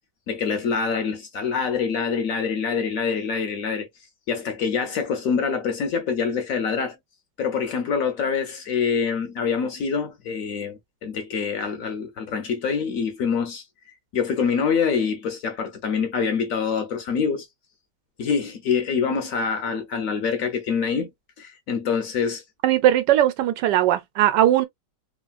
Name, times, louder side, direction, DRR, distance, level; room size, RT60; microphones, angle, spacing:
voice 1, 0.3-3.9 4.3-7.0 7.4-17.5 18.2-21.1 21.4-22.4, left 6 dB, 70° left, 0.9 m, -25 dB
voice 2, 22.6-24.7, right 12 dB, 90° right, 1.3 m, -19 dB
3.2 x 2.4 x 2.2 m
omnidirectional pair, 1.8 m